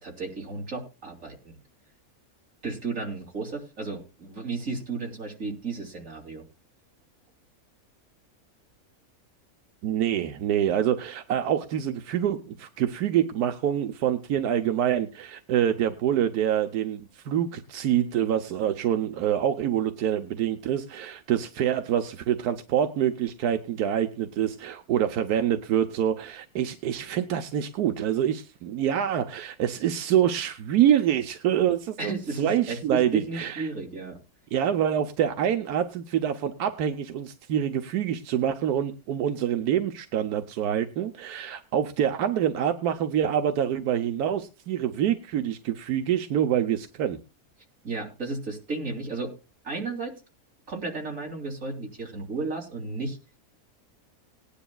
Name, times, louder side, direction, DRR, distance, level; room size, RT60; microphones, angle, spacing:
voice 1, 0.0-1.6 2.6-6.4 32.0-34.2 47.8-49.3 49.6-50.1 50.7-53.2, right 3 dB, 55° right, 0 dB, 3.4 m, -33 dB
voice 2, 9.8-33.7 34.5-47.2, right 10 dB, 90° right, 7 dB, 1.3 m, -26 dB
19.5 x 10.0 x 2.3 m, 0.30 s
omnidirectional pair, 1.6 m